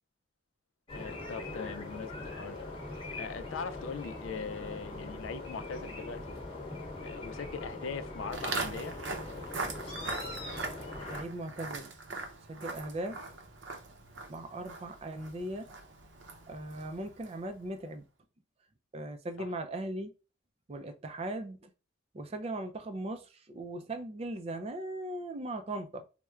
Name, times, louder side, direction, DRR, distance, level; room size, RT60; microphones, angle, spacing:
voice 1, 0.9-2.8 3.1-6.4 7.0-9.0 19.4-19.5, left 5 dB, 90° left, 0.4 m, -41 dB
sound 1, 0.9-11.2, left 2 dB, 30° left, 0.9 m, -41 dB
Walk footsteps, 8.3-17.5, right 3 dB, 70° right, 0.7 m, -41 dB
voice 2, 11.1-11.9 12.5-13.2 14.3-15.7 16.5-18.0 18.9-20.1 20.7-21.7 22.1-26.1, right 1 dB, 30° right, 0.4 m, -38 dB
4.3 x 2.1 x 2.3 m
head